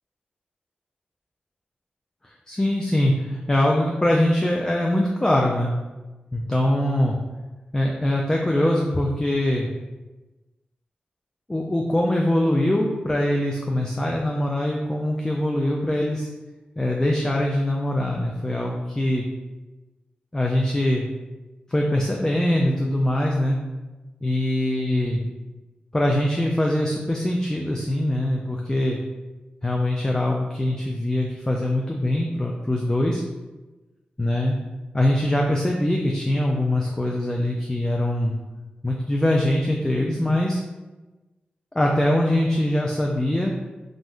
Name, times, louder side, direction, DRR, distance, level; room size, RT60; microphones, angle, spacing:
voice 1, 2.2-5.7 6.3-7.2 7.7-9.7 11.5-16.3 16.8-19.3 20.3-21.1 21.7-23.6 24.2-25.2 25.9-29.0 29.6-33.2 34.2-34.6 34.9-38.3 38.8-40.6 41.7-43.5, left 1 dB, 20° left, -1 dB, 0.4 m, -22 dB
2.5 x 2.1 x 3.5 m, 1.2 s
cardioid pair, 45°, 3 cm